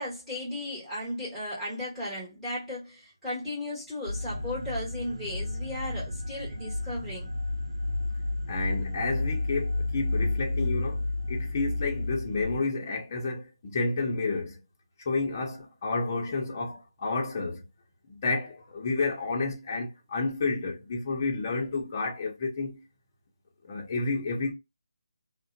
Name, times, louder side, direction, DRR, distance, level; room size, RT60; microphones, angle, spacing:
voice 1, 0.0-7.3, left 1 dB, ahead, 1.3 m, -35 dB
sound 1, 4.1-12.6, left 2 dB, 85° right, 0.6 m, -31 dB
voice 2, 8.5-11.0 11.3-14.6 15.1-17.6 18.1-22.8 23.6-24.5, left 3 dB, 35° left, 0.7 m, -30 dB
2.4 x 2.1 x 2.4 m
figure-of-eight pair, 155°, 3 cm